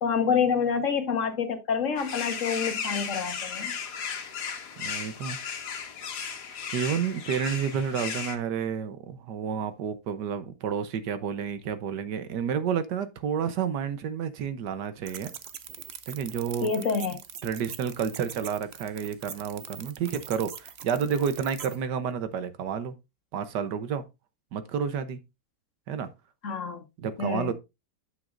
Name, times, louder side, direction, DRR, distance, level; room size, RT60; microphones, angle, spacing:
voice 1, 0.0-3.7 16.6-17.2 26.4-26.8 27.2-27.5, left 6 dB, 50° left, 1.7 m, -27 dB
sound 1, 2.0-8.4, left 6 dB, 75° left, 1.7 m, -35 dB
voice 2, 4.8-5.4 6.7-15.3 16.1-16.7 17.4-22.9 23.3-24.0 24.5-25.2 25.9-26.1 27.0-27.5, right 7 dB, 85° right, 1.6 m, -30 dB
sound 2, 15.1-21.8, right 8 dB, 55° right, 0.7 m, -43 dB
9.2 x 7.6 x 2.6 m
omnidirectional pair, 1.8 m